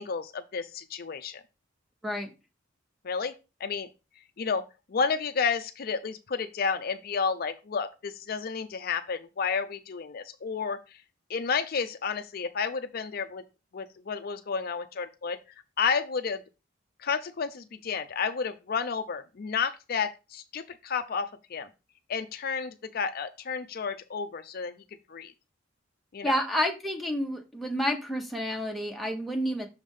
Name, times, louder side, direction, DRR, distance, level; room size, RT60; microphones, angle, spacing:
voice 1, 0.0-1.4 3.0-3.3 3.6-3.9 4.4-11.0 11.3-13.4 13.7-15.4 15.8-16.4 17.0-21.7 22.1-24.7 25.1-25.3 26.1-26.4, left 5 dB, 50° left, 9 dB, 0.5 m, -31 dB
voice 2, 26.2-29.7, equal, ahead, 1 dB, 0.9 m, -29 dB
6.3 x 3.4 x 5.3 m, 0.28 s
head